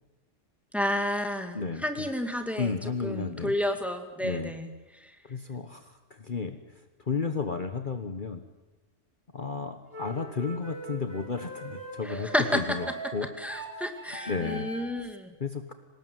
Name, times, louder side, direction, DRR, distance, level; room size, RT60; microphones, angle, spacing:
voice 1, 0.7-2.7 3.0-5.2 12.0-12.8 13.4-15.3, left 1 dB, ahead, 6 dB, 2.3 m, -31 dB
voice 2, 1.5-2.1 2.6-3.5 4.2-4.5 5.2-8.4 9.3-13.3 14.3-14.7 15.0-15.1 15.4-15.7, left 4 dB, 45° left, 8 dB, 1.4 m, -33 dB
sound 1, 9.9-15.0, right 2 dB, 50° right, 3.9 m, -41 dB
25.0 x 19.0 x 9.3 m, 1.1 s
omnidirectional pair, 1.2 m